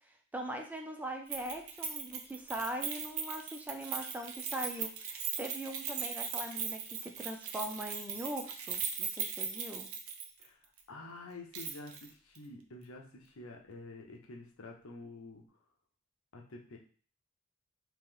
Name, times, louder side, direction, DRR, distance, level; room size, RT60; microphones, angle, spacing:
voice 1, 0.3-9.9, right 1 dB, 10° right, 3 dB, 0.4 m, -41 dB
Keys jangling, 1.3-10.5 10.8-10.9 11.5-12.1 12.4-12.5, right 6 dB, 75° right, 0.6 m, -39 dB
voice 2, 10.4-15.6 16.3-16.8, left 2 dB, 75° left, 1 dB, 0.8 m, -49 dB
3.0 x 2.9 x 3.6 m, 0.42 s
head